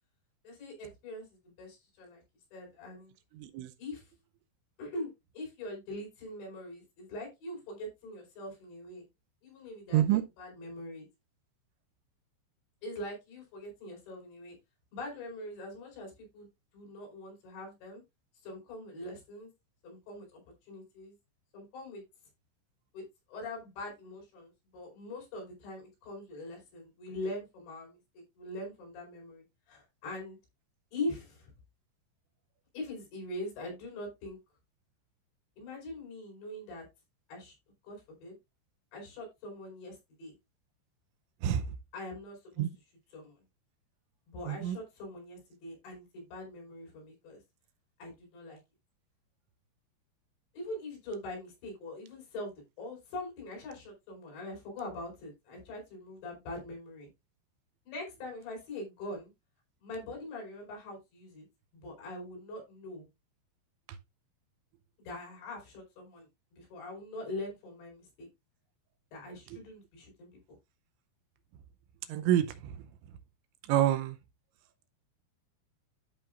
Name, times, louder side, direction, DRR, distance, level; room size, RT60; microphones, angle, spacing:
voice 1, 0.4-2.2 2.5-3.1 3.8-4.1 4.8-9.0 9.4-11.1 12.8-14.6 14.9-16.5 16.7-18.0 18.4-19.5 19.8-21.2 21.5-22.0 22.9-30.4 30.9-31.5 32.7-34.4 35.6-36.8 37.3-37.6 37.8-38.4 38.9-40.3 41.9-42.7 43.1-43.4 44.3-47.4 48.0-48.6 50.5-57.1 57.9-59.3 59.8-61.5 61.7-63.1 65.0-68.3 69.1-70.3, left 1 dB, 65° left, 6.8 m, -43 dB
voice 2, 72.1-72.5 73.7-74.2, right 12 dB, 80° right, 2.9 m, -26 dB
13.5 x 5.6 x 2.5 m
omnidirectional pair, 5.5 m